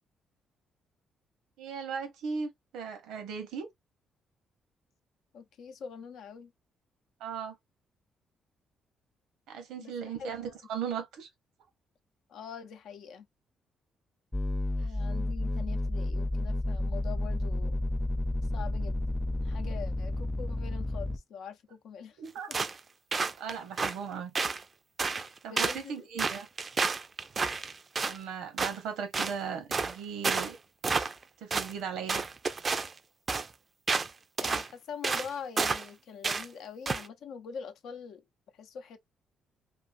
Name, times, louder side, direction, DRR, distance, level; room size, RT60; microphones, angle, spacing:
voice 1, 1.6-3.7 7.2-7.5 9.5-11.3 22.2-22.6 23.4-24.3 25.4-26.5 28.1-30.6 31.4-32.2, right 6 dB, 90° right, 0.9 m, -37 dB
voice 2, 5.3-6.5 9.8-9.9 10.2-10.6 12.3-13.2 14.8-17.8 18.5-19.0 19.4-22.2 22.5-22.6 25.1-25.2 25.5-26.1 34.4-38.2 38.5-39.0, left 6 dB, 75° left, 0.5 m, -44 dB
sound 1, 14.3-21.2, left 1 dB, 10° left, 0.6 m, -31 dB
sound 2, 22.5-22.8 23.1-24.0 24.4-24.6 25.0-25.3 25.6-25.8 26.2-28.2 28.6-28.8 29.1-29.4 29.7-29.9 30.2-30.5 30.8-31.2 31.5-31.7 32.1-32.9 33.3-33.5 33.9-34.1 34.4-34.7 35.0-35.3 35.6-35.9 36.2-36.5 36.9-37.1, right 4 dB, 35° right, 0.4 m, -30 dB
2.6 x 2.5 x 2.5 m
cardioid pair, 90°, 0 cm